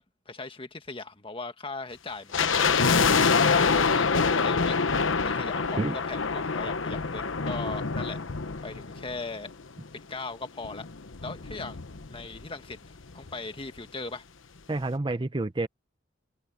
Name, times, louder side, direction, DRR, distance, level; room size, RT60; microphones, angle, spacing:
voice 1, 0.0-2.8 3.3-4.8 5.2-8.2 8.6-9.5 9.9-10.9 11.2-11.8 12.1-14.2, left 3 dB, 30° left, 1.7 m, -39 dB
sound 1, 2.3-9.6 9.9-10.0 10.6-12.5 12.7-12.8 13.0-13.3 13.8-13.9, left 5 dB, 90° left, 1.1 m, -26 dB
voice 2, 14.7-15.7, right 2 dB, 25° right, 0.7 m, -28 dB
head